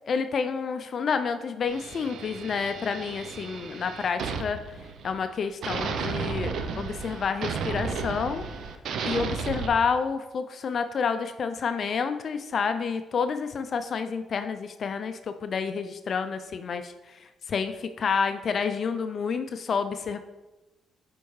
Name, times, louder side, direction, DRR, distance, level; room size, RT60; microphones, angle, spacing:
voice 1, 0.1-4.6 5.0-8.4 9.0-17.2 17.5-20.2, left 5 dB, 55° left, 9 dB, 0.3 m, -29 dB
sound 1, 1.7-5.3 5.6-9.7, right 5 dB, 70° right, 0.5 m, -33 dB
6.9 x 4.4 x 3.1 m, 1.1 s
cardioid pair, 75°, 0 cm